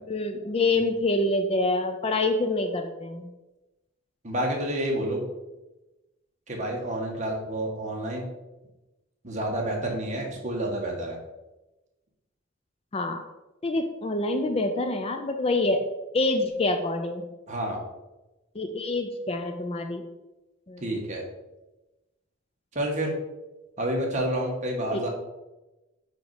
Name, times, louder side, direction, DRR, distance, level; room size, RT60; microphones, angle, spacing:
voice 1, 0.1-3.3 12.9-13.2 13.6-15.8 16.1-17.3 18.6-20.0 20.7-20.8 24.9-25.0, left 2 dB, 30° left, 6 dB, 0.4 m, -26 dB
voice 2, 4.2-5.2 6.5-8.3 9.2-11.2 17.5-17.8 20.8-21.2 22.7-23.1 23.8-25.1, right 1 dB, 35° right, -1 dB, 1.5 m, -29 dB
5.2 x 5.1 x 4.8 m, 1.0 s
head